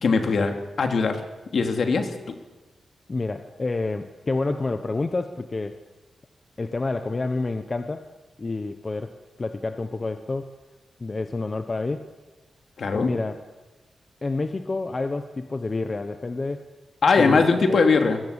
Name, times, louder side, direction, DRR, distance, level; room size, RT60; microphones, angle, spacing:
voice 1, 0.0-1.2 1.5-2.3 12.8-13.1 17.0-18.2, left 4 dB, 55° left, 6 dB, 2.7 m, -21 dB
voice 2, 3.1-5.8 6.6-8.1 8.4-9.1 9.4-10.5 11.0-12.0 12.9-13.4 14.2-16.7 17.2-17.4, left 3 dB, 25° left, 8 dB, 1.0 m, -28 dB
26.5 x 21.5 x 8.3 m, 1.2 s
wide cardioid pair, 170°, 0 cm